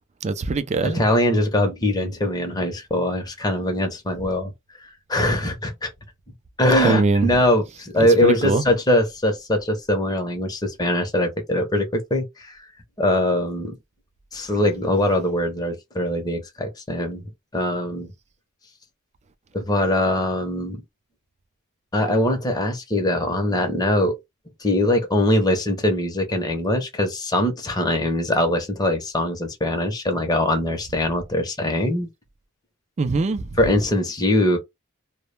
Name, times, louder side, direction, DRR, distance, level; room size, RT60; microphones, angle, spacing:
voice 1, 0.2-1.0 6.8-7.3 8.2-8.6 33.0-33.5, right 3 dB, 30° right, 0.3 m, -21 dB
voice 2, 0.8-4.5 5.1-5.9 6.6-12.5 13.0-13.8 14.3-17.2 17.5-18.1 19.5-20.8 21.9-24.2 24.6-32.1 33.6-34.6, left 1 dB, 20° left, 0.7 m, -22 dB
2.1 x 2.0 x 3.1 m
head